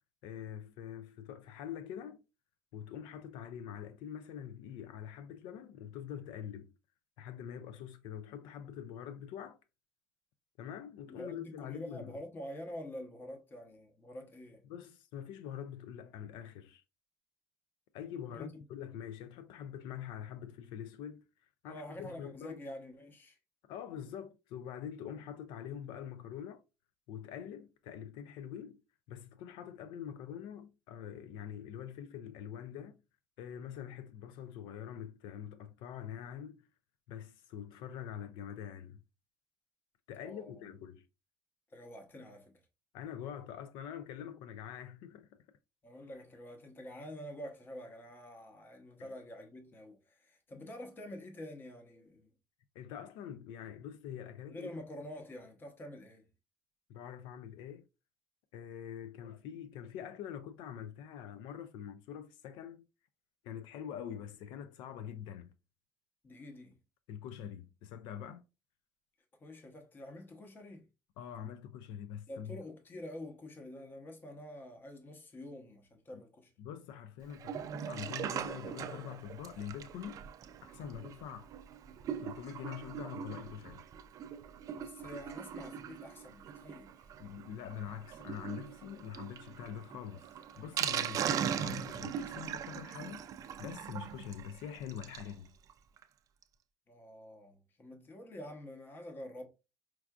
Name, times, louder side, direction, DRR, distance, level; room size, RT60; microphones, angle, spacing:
voice 1, 0.2-2.2 2.7-6.7 7.2-9.6 10.6-12.1 14.7-16.8 17.9-22.6 23.7-26.6 27.1-28.8 29.1-33.0 33.4-36.7 37.1-39.0 40.1-41.1 42.9-45.5 49.0-49.1 52.7-54.7 56.9-57.8 58.5-62.9 63.4-65.5 67.1-68.4 71.2-72.6 76.6-80.2 80.6-81.5 82.2-83.8 87.2-93.2 93.6-95.5, left 9 dB, 85° left, 0.4 m, -45 dB
voice 2, 11.1-14.6 18.3-18.6 21.6-23.4 40.2-40.6 41.7-42.5 45.8-52.3 54.5-56.3 66.2-66.7 69.4-70.8 72.3-76.5 84.8-86.9 96.9-99.4, left 1 dB, 25° left, 0.8 m, -47 dB
Sink (filling or washing), 77.3-95.3 95.7-95.8 96.0-96.1 96.4-96.5, right 9 dB, 45° right, 0.3 m, -40 dB
4.5 x 2.4 x 2.3 m
cardioid pair, 130°, 8 cm